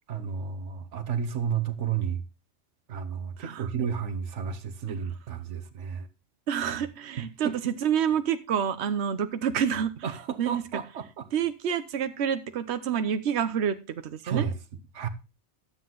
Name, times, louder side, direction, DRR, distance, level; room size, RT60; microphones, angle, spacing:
voice 1, 0.1-2.2 2.9-6.1 7.2-7.6 10.0-11.3 14.2-14.5 14.9-15.1, right 7 dB, 90° right, 1.3 m, -32 dB
voice 2, 3.4-3.9 6.5-9.9 10.4-10.6 11.3-14.5, right 8 dB, 70° right, 1.1 m, -28 dB
12.0 x 7.6 x 3.8 m
omnidirectional pair, 1.2 m